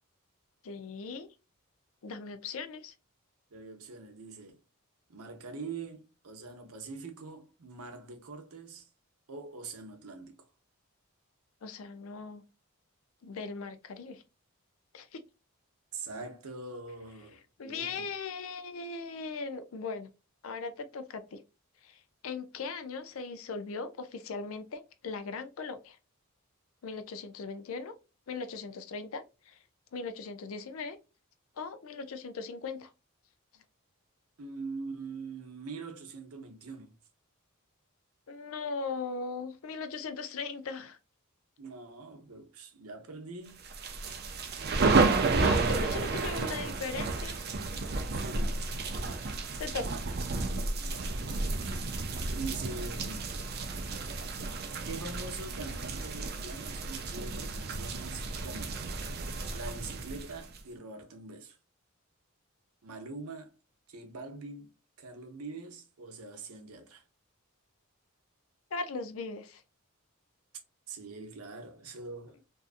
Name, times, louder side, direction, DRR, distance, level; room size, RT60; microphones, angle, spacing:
voice 1, 0.6-1.3 2.0-2.9 11.6-12.4 13.2-14.2 14.9-15.2 17.6-20.1 20.4-21.4 21.8-26.0 26.8-28.0 28.3-29.6 29.9-31.0 31.6-32.9 38.3-41.0 45.3-47.4 49.6-50.0 68.7-69.6, left 4 dB, 70° left, 0.4 m, -39 dB
voice 2, 3.5-4.6 5.1-8.9 9.3-10.4 15.9-18.1 34.4-36.9 41.6-43.6 48.1-48.6 50.8-51.2 52.3-53.3 54.8-58.8 59.1-61.6 62.8-63.5 63.9-64.7 65.0-67.0 70.9-72.4, right 3 dB, 85° right, 0.7 m, -43 dB
sound 1, 43.6-60.6, right 3 dB, 45° right, 0.4 m, -32 dB
2.7 x 2.4 x 2.4 m
head